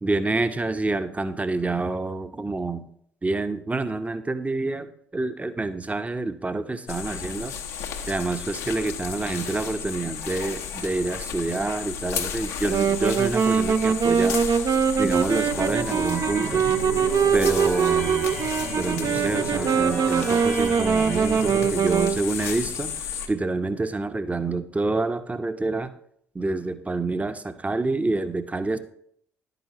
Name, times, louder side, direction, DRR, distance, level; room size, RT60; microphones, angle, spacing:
voice 1, 0.0-2.8 3.2-7.5 8.1-14.4 15.0-16.7 17.3-18.3 18.8-25.9 26.3-28.8, right 3 dB, 20° right, 10 dB, 0.8 m, -27 dB
sound 1, 6.9-23.3, left 7 dB, 80° left, 0.8 m, -33 dB
Wind instrument woodwind instrument, 12.7-22.2, right 6 dB, 50° right, 0.5 m, -23 dB
sound 2, 15.4-21.7, right 4 dB, 75° right, 1.2 m, -32 dB
11.0 x 9.1 x 2.9 m, 0.69 s
hypercardioid pair, 50°, 7 cm